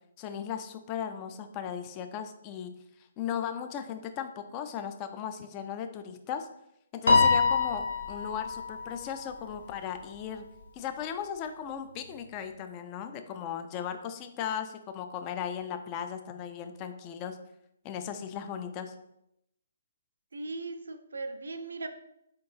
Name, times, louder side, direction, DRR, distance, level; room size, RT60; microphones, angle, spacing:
voice 1, 0.2-2.7 3.2-6.5 6.9-10.4 10.7-17.4 17.8-18.9, left 8 dB, 25° left, 8 dB, 0.4 m, -37 dB
Piano, 7.1-9.6, left 4 dB, 65° left, 0.8 m, -25 dB
voice 2, 20.3-21.9, right 3 dB, 70° right, 8 dB, 0.5 m, -38 dB
4.4 x 3.8 x 2.6 m, 0.79 s
figure-of-eight pair, 130°, 0 cm